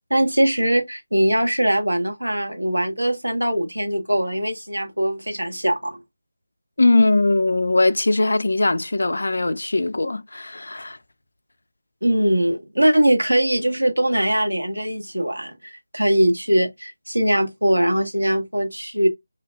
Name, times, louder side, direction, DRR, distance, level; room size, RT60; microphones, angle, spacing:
voice 1, 0.1-6.0 12.0-19.1, right 1 dB, 80° right, 0.9 m, -21 dB
voice 2, 6.8-11.0, left 2 dB, 55° left, 0.3 m, -20 dB
5.2 x 2.2 x 2.2 m
figure-of-eight pair, 160°, 0 cm